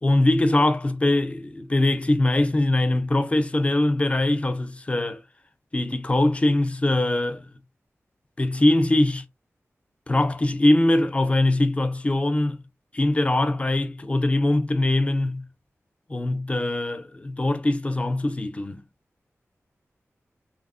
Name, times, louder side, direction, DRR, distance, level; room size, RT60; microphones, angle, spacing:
voice 1, 0.0-5.2 5.7-7.5 8.4-9.2 10.1-12.6 12.9-15.5 16.1-18.8, left 1 dB, 25° left, 0.4 m, -22 dB
2.9 x 2.0 x 2.3 m
wide cardioid pair, 80°, 5 cm